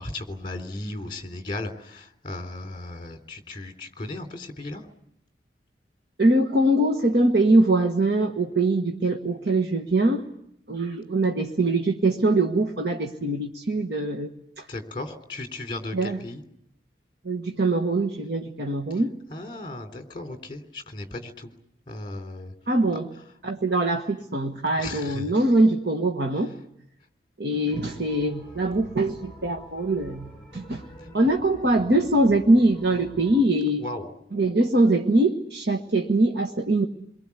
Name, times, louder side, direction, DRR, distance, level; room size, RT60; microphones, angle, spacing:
voice 1, 0.0-4.8 14.7-16.4 19.3-21.5 21.9-22.5 24.8-25.2 33.8-34.1, left 2 dB, 30° left, 6 dB, 3.2 m, -36 dB
voice 2, 6.2-10.2 10.7-14.3 14.6-14.7 15.9-16.2 17.2-19.1 22.7-23.1 23.4-26.5 27.4-30.8 31.1-33.9 34.3-36.8, right 2 dB, 65° right, 3 dB, 1.5 m, -22 dB
sound 1, 27.7-33.5, equal, 5° left, 5.7 m, -46 dB
29.0 x 22.5 x 8.3 m, 0.76 s
head